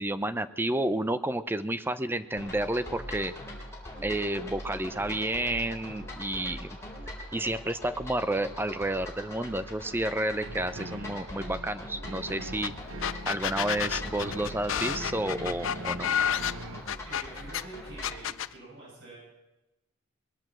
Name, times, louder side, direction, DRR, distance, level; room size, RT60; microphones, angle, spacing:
voice 1, 0.0-3.3 4.0-6.7 7.3-12.7 13.3-16.1, right 1 dB, 10° right, 12 dB, 0.5 m, -30 dB
sound 1, 2.4-18.2, left 1 dB, 15° left, 3.7 m, -42 dB
sound 2, 10.4-16.8, right 1 dB, 75° right, 1.1 m, -42 dB
sound 3, 12.6-12.7 13.0-17.6 18.0-18.5, left 9 dB, 70° left, 0.5 m, -30 dB
voice 2, 17.0-19.2, right 2 dB, 60° right, -6 dB, 8.0 m, -46 dB
21.0 x 8.5 x 7.6 m, 0.98 s
head